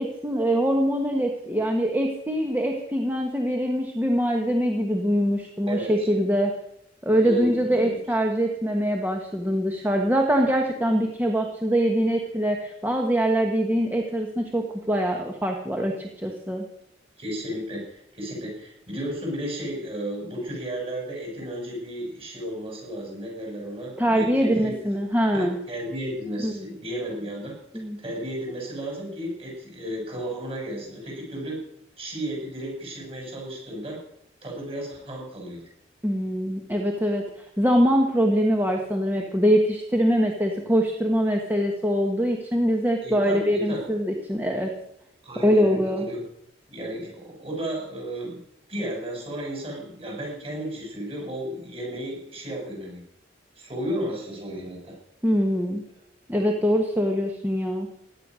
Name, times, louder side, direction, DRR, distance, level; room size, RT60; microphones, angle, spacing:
voice 1, 0.0-6.5 7.0-16.6 24.0-25.6 26.4-26.6 27.7-28.0 36.0-44.7 45.4-46.1 55.2-55.8 56.3-57.9, equal, 10° right, 2 dB, 1.4 m, -23 dB
voice 2, 5.7-6.1 7.2-8.0 17.2-24.7 25.3-27.5 28.0-31.6 32.0-34.0 34.4-35.6 43.0-43.9 45.2-46.2 46.7-48.4 48.7-53.0 53.6-54.9, right 1 dB, 30° right, 0 dB, 7.1 m, -33 dB
16.5 x 11.0 x 6.3 m, 0.77 s
head